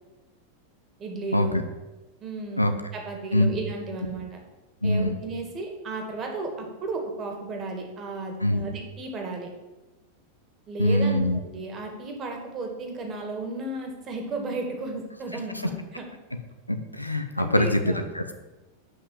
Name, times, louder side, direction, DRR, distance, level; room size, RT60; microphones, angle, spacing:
voice 1, 1.0-1.6 2.2-4.4 4.8-9.5 10.7-16.1 17.4-18.1, right 2 dB, 30° right, 2 dB, 2.3 m, -34 dB
voice 2, 4.8-5.1 8.4-8.6 10.8-11.4 16.7-18.3, left 1 dB, 85° left, 7 dB, 0.8 m, -23 dB
7.7 x 5.9 x 7.4 m, 1.1 s
figure-of-eight pair, 90°, 0 cm